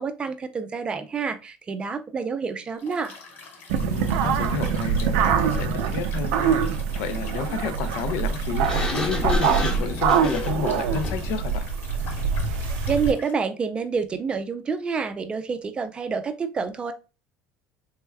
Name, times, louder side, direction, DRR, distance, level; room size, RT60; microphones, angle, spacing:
voice 1, 0.0-3.1 12.9-16.9, right 5 dB, 25° right, 0.4 m, -28 dB
Liquid, 2.8-13.3, left 4 dB, 50° left, 1.1 m, -45 dB
sound 1, 3.7-13.1, right 6 dB, 90° right, 0.4 m, -24 dB
voice 2, 3.8-6.6 7.0-11.7, left 6 dB, 70° left, 0.5 m, -31 dB
Sliding door, 8.6-11.4, left 1 dB, 20° left, 1.0 m, -30 dB
3.4 x 3.3 x 2.2 m
cardioid pair, 135°, 4 cm